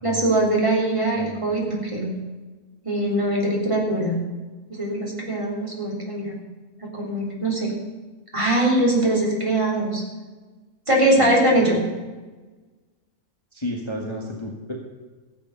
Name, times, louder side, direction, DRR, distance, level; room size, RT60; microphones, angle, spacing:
voice 1, 0.0-2.1 2.8-4.1 4.7-6.3 6.8-7.7 8.3-10.0 10.9-11.8, right 1 dB, 20° right, -3 dB, 3.6 m, -22 dB
voice 2, 13.5-14.8, left 1 dB, 20° left, -1 dB, 1.6 m, -31 dB
15.5 x 8.3 x 6.9 m, 1.3 s
omnidirectional pair, 1.6 m